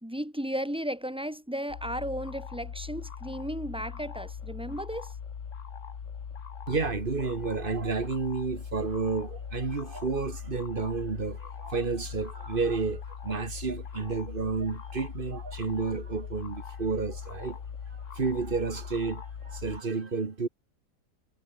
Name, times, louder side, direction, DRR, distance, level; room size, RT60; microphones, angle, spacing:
voice 1, 0.0-5.1, equal, 5° right, 1.9 m, -34 dB
sound 1, 1.7-19.8, left 7 dB, 50° left, 1.6 m, -40 dB
voice 2, 6.7-17.6 17.9-20.5, right 4 dB, 35° right, 1.7 m, -31 dB
omnidirectional pair, 1.8 m